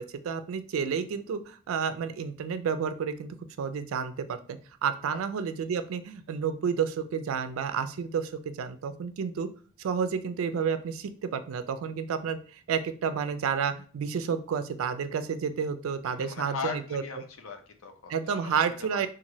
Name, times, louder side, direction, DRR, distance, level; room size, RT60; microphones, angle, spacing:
voice 1, 0.0-9.5 9.8-17.0 18.1-19.1, right 6 dB, 75° right, 11 dB, 0.3 m, -31 dB
voice 2, 16.1-19.1, left 5 dB, 75° left, 6 dB, 0.5 m, -39 dB
3.0 x 2.4 x 2.7 m, 0.41 s
head